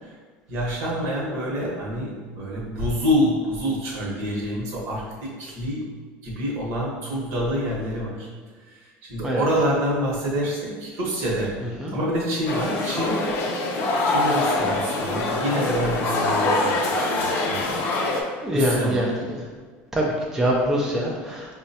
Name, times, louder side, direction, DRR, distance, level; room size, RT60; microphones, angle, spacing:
voice 1, 0.5-5.9 6.2-8.3 8.7-11.6 11.9-13.2 14.0-17.7 18.5-19.0, equal, 60° right, -4 dB, 1.0 m, -27 dB
sound 1, 12.5-18.2, left 2 dB, 45° left, 0.5 m, -24 dB
voice 2, 17.4-17.8 18.4-19.4 19.9-21.5, equal, 10° right, -3 dB, 0.4 m, -24 dB
4.5 x 2.1 x 2.7 m, 1.4 s
cardioid pair, 140°, 5 cm